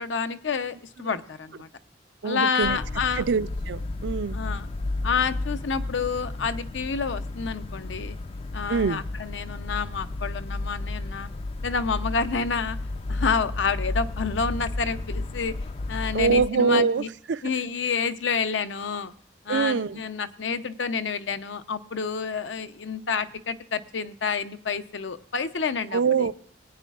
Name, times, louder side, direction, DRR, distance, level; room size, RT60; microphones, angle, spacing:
voice 1, 0.0-1.7 2.2-3.2 4.3-4.7 5.0-8.2 8.5-11.3 11.6-12.8 13.1-15.6 15.9-17.1 17.4-19.1 19.5-26.3, left 5 dB, 80° left, 0.6 m, -29 dB
voice 2, 2.2-2.8 3.1-4.4 8.7-9.0 16.1-17.4 19.5-20.0 25.9-26.3, right 5 dB, 70° right, 0.4 m, -24 dB
sound 1, 2.6-16.5, left 2 dB, 30° left, 0.3 m, -33 dB
21.0 x 9.1 x 2.4 m
head